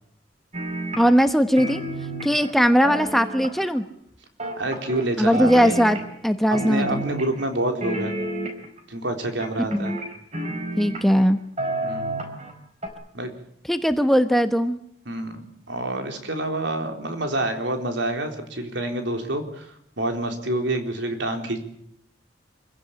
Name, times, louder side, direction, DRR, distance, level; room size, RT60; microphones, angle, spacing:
sound 1, 0.5-1.3 1.6-3.8 4.4-5.1 5.3-6.3 6.5-7.5 7.8-8.8 9.4-11.2 11.6-12.5 12.8-12.9, right 1 dB, 35° right, 4.2 m, -30 dB
voice 1, 1.0-1.8 2.2-3.8 5.2-7.0 9.7-10.0 10.8-11.4 13.7-14.8, equal, ahead, 8 dB, 1.0 m, -19 dB
voice 2, 4.6-5.8 6.5-8.1 8.9-9.9 11.8-12.3 13.1-13.3 15.1-21.6, right 1 dB, 70° right, 5 dB, 4.0 m, -28 dB
25.5 x 16.0 x 8.8 m, 0.73 s
head